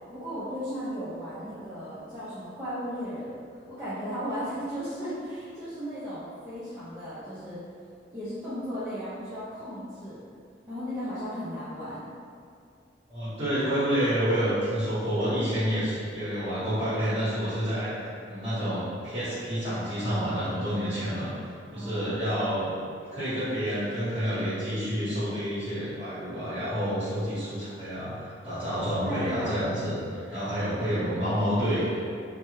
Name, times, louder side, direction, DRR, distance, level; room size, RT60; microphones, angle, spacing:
voice 1, 0.1-3.3 3.7-7.6 8.1-10.2 10.7-12.1 21.7-22.1 29.0-29.6, equal, 15° right, -14 dB, 0.5 m, -35 dB
voice 2, 13.1-21.5 21.7-22.7 23.1-32.1, equal, 30° right, -15 dB, 1.0 m, -29 dB
3.3 x 2.1 x 3.0 m, 2.3 s
head